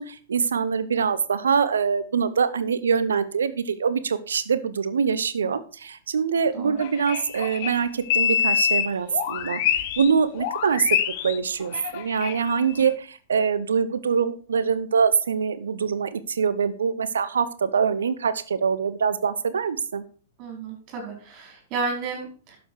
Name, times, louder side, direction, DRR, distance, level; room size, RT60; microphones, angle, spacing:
voice 1, 0.0-9.6 10.0-11.0 11.2-20.0, right 6 dB, 65° right, 14 dB, 1.0 m, -24 dB
sound 1, 6.8-10.1 10.4-12.9, left 9 dB, 45° left, 1.2 m, -26 dB
voice 2, 20.4-22.6, right 4 dB, 35° right, 2 dB, 5.0 m, -32 dB
12.0 x 7.1 x 4.8 m, 0.40 s
figure-of-eight pair, 105°, 0 cm